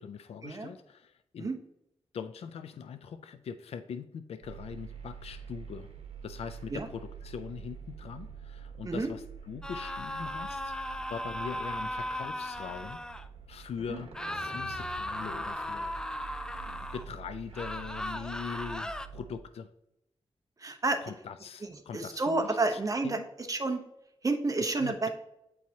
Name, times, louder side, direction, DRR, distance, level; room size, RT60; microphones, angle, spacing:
voice 1, 0.0-1.5 2.1-5.9 6.2-13.0 13.5-16.3 16.7-19.7 21.0-23.3 24.6-25.1, left 6 dB, 80° left, 10 dB, 0.4 m, -42 dB
sound 1, 4.4-19.3, right 6 dB, 75° right, 1.1 m, -47 dB
sound 2, 9.6-13.3 14.1-17.1 17.5-19.1, left 1 dB, 5° left, 0.4 m, -37 dB
voice 2, 20.6-21.0 21.6-23.8 24.2-25.1, right 3 dB, 35° right, 5 dB, 0.9 m, -30 dB
8.2 x 4.5 x 2.8 m, 0.84 s
cardioid pair, 85°, 10 cm